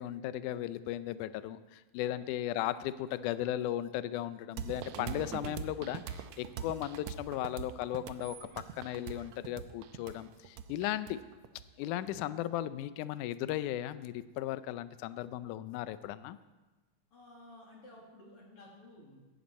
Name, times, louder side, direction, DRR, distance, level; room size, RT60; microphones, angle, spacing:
voice 1, 0.0-8.4 8.8-11.2 11.8-16.4, left 13 dB, 80° left, 14 dB, 1.9 m, -36 dB
sound 1, 4.6-12.1, right 8 dB, 80° right, 1.6 m, -42 dB
voice 2, 17.1-19.3, left 1 dB, 45° left, -2 dB, 3.1 m, -54 dB
17.0 x 14.0 x 4.2 m, 1.2 s
omnidirectional pair, 3.9 m